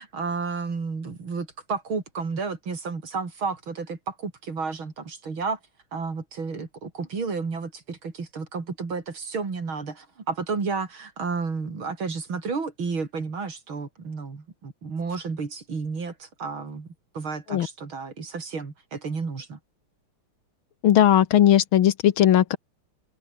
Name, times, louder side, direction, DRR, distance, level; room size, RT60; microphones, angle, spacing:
voice 1, 0.0-5.6 5.9-16.9 17.1-19.6, right 4 dB, 70° right, 4.4 m, -32 dB
voice 2, 20.8-22.6, left 11 dB, 75° left, 1.9 m, -18 dB
omnidirectional pair, 2.3 m